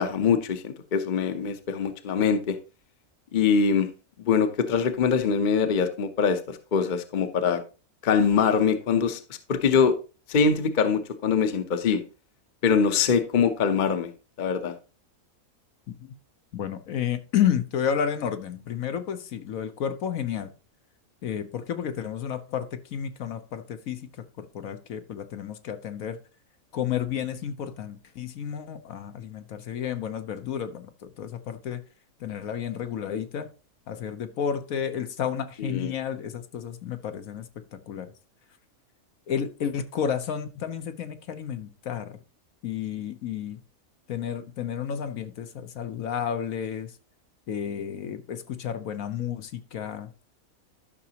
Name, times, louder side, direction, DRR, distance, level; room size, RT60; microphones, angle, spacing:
voice 1, 0.0-2.6 3.3-3.9 4.2-7.6 8.0-9.2 9.5-10.0 10.3-12.0 12.6-14.1 14.4-14.7 35.6-35.9, left 6 dB, 40° left, 8 dB, 0.8 m, -23 dB
voice 2, 16.5-20.5 21.2-24.1 24.4-26.2 26.7-31.8 32.2-33.5 33.9-38.1 39.3-42.2 42.6-43.6 44.1-46.9 47.5-50.1, left 8 dB, 70° left, 8 dB, 1.2 m, -31 dB
12.5 x 5.9 x 2.9 m, 0.34 s
omnidirectional pair, 1.6 m